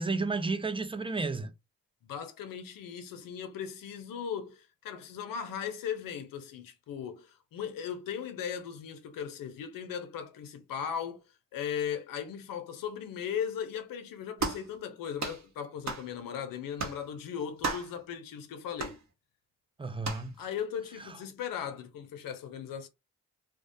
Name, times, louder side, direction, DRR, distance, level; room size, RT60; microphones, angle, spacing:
voice 1, 0.0-1.5 19.8-20.5, right 3 dB, 15° right, 0.5 m, -32 dB
voice 2, 2.0-11.3 11.5-19.0 20.4-22.9, left 8 dB, 80° left, 0.6 m, -37 dB
sound 1, 14.4-14.7 15.2-15.4 15.9-16.1 16.8-17.0 17.6-17.9 18.8-19.0 20.0-20.3, right 4 dB, 55° right, 0.9 m, -34 dB
2.3 x 2.1 x 2.6 m
supercardioid pair, 45°, 34 cm